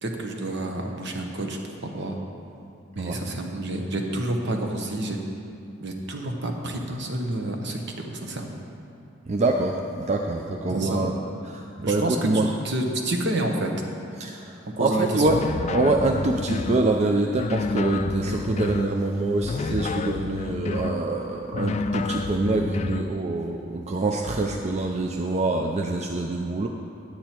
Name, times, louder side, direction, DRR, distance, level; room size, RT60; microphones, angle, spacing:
voice 1, 0.0-2.2 3.0-5.2 5.8-8.5 10.7-11.1 11.8-13.7 14.8-15.3, right 1 dB, 60° right, 2 dB, 1.1 m, -29 dB
voice 2, 9.3-11.1 11.5-12.5 14.2-15.4 15.7-26.7, right 2 dB, 35° right, 2 dB, 0.4 m, -25 dB
sound 1, 15.3-16.8 17.3-18.9 19.4-21.0 21.5-23.1, left 3 dB, 35° left, 0.3 m, -29 dB
9.4 x 8.8 x 4.4 m, 2.8 s
head